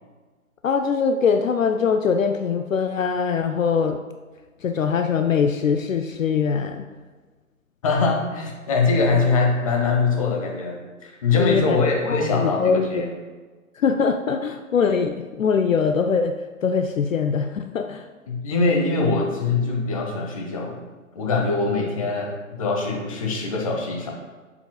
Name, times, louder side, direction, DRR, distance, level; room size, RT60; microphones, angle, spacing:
voice 1, 0.6-4.0 4.6-6.9 11.4-11.8 12.1-13.0 13.8-16.4 16.6-18.1, left 6 dB, 65° left, 7 dB, 0.5 m, -22 dB
voice 2, 7.8-13.0 18.3-20.8 21.1-24.1, left 4 dB, 25° left, 0 dB, 0.8 m, -23 dB
6.9 x 6.8 x 2.2 m, 1.3 s
figure-of-eight pair, 130°, 43 cm